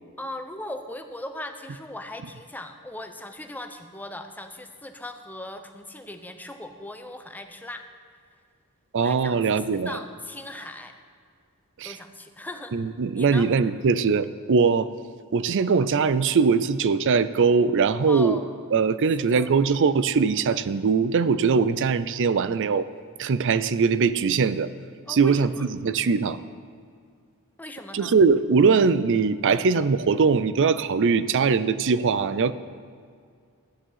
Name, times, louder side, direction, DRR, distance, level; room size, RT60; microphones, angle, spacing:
voice 1, 0.2-7.8 9.0-10.9 11.8-12.8 13.1-13.5 18.1-18.5 19.2-19.5 25.1-25.7 27.6-28.1, left 1 dB, 10° left, 6 dB, 0.7 m, -38 dB
voice 2, 8.9-10.0 11.8-12.0 12.7-14.9 15.3-18.4 18.7-22.9 23.2-24.7 25.1-26.4 27.9-32.5, right 5 dB, 55° right, 15 dB, 0.5 m, -21 dB
12.5 x 9.9 x 5.7 m, 2.1 s
head